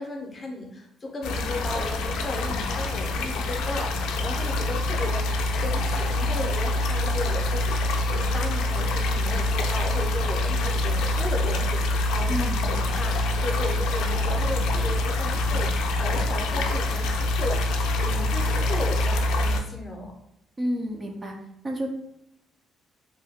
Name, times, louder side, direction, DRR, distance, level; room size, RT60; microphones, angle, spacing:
voice 1, 0.0-5.2 5.5-20.1, left 2 dB, 25° left, 1 dB, 0.6 m, -35 dB
sound 1, 1.2-19.6, left 2 dB, 85° left, 0.3 m, -25 dB
voice 2, 12.3-12.6 20.6-21.4 21.6-21.9, equal, 20° right, 2 dB, 0.3 m, -29 dB
2.7 x 2.1 x 3.4 m, 0.77 s
cardioid pair, 140°, 0 cm